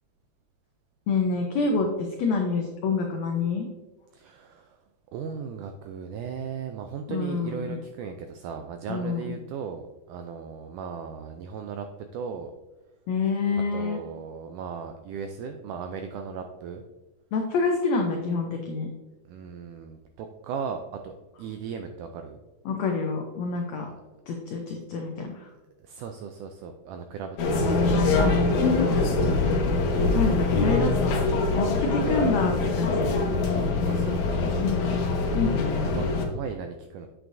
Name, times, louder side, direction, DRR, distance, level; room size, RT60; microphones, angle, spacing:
voice 1, 1.1-3.7 7.1-7.7 8.9-9.3 13.1-14.0 17.3-18.9 22.6-23.9 24.3-25.5 27.9-29.0 30.1-31.2 31.5-33.1 34.6-35.0 35.3-35.9, left 4 dB, 85° left, 2 dB, 1.5 m, -27 dB
voice 2, 4.1-4.8 5.1-11.9 12.1-12.5 13.7-16.8 19.3-22.4 23.9-24.0 25.8-28.5 32.1-32.2 33.8-34.4 35.8-37.1, right 6 dB, 85° right, 6 dB, 1.8 m, -37 dB
sound 1, 27.4-36.2, left 3 dB, 70° left, 2.0 m, -24 dB
8.0 x 7.8 x 2.6 m, 1.2 s
omnidirectional pair, 4.1 m